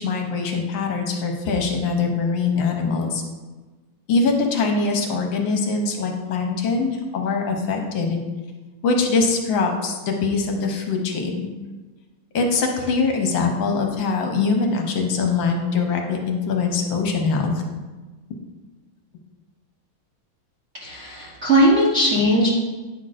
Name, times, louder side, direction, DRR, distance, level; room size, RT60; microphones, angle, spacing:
voice 1, 0.0-3.2 4.1-8.2 8.8-11.5 12.3-17.6, left 4 dB, 70° left, 2 dB, 1.5 m, -23 dB
voice 2, 20.8-22.5, equal, 40° right, -7 dB, 1.1 m, -18 dB
9.3 x 5.9 x 2.5 m, 1.3 s
omnidirectional pair, 2.3 m